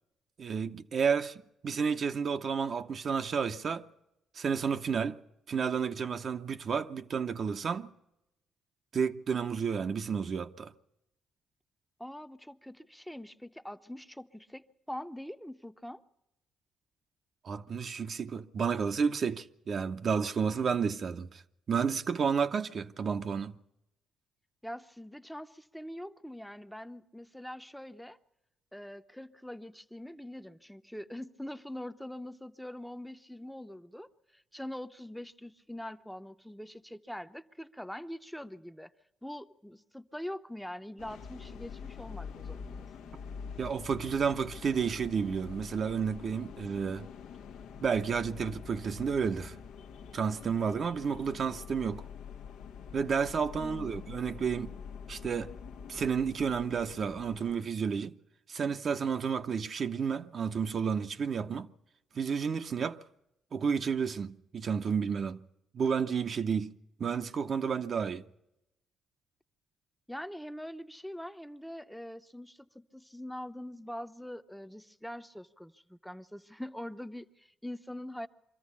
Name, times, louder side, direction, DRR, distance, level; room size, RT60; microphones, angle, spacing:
voice 1, 0.4-3.9 4.3-5.2 5.5-7.9 8.9-10.7 17.4-21.4 21.7-23.6 43.6-47.1 47.8-49.6 50.1-52.0 52.9-54.7 55.1-55.5 55.9-58.2 58.5-61.7 62.1-63.0 63.5-65.5 65.7-66.7 67.0-68.2, right 6 dB, 50° right, 0.7 m, -31 dB
voice 2, 12.0-16.0 24.6-28.2 28.7-38.9 39.2-43.1 53.6-54.2 70.1-78.3, left 1 dB, ahead, 0.7 m, -43 dB
sound 1, 41.0-57.5, left 6 dB, 90° left, 1.0 m, -46 dB
24.0 x 14.0 x 8.4 m
cardioid pair, 90°, 0 cm